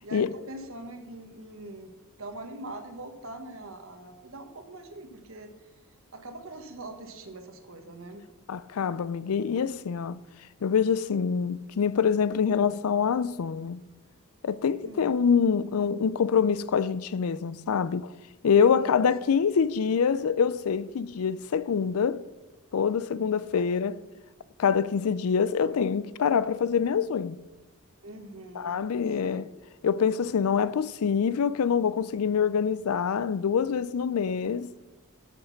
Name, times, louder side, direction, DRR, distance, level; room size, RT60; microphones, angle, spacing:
voice 1, 0.0-5.5 6.1-8.2 14.8-15.2 18.7-19.3 23.5-23.7 28.0-28.8 29.2-29.4, right 2 dB, 65° right, 1.4 m, -43 dB
voice 2, 8.5-10.2 10.6-13.8 14.4-18.1 18.4-22.2 22.7-24.0 24.6-27.4 28.6-29.5 29.8-34.7, left 6 dB, 80° left, 0.4 m, -25 dB
11.5 x 6.5 x 5.8 m
head